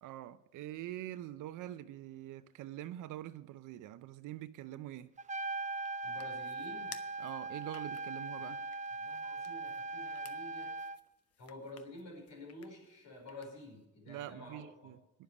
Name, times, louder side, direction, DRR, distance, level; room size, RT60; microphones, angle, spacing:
voice 1, 0.0-5.1 7.2-8.6 14.1-15.0, right 13 dB, 85° right, 0.6 m, -45 dB
sound 1, 5.2-13.9, left 8 dB, 55° left, 0.9 m, -58 dB
Trumpet, 5.2-11.0, right 3 dB, 25° right, 0.5 m, -40 dB
voice 2, 6.0-7.0 8.4-8.6 9.0-10.8 11.4-14.9, left 1 dB, 80° left, 5.3 m, -50 dB
10.0 x 7.3 x 9.4 m
cardioid pair, 90°, 30 cm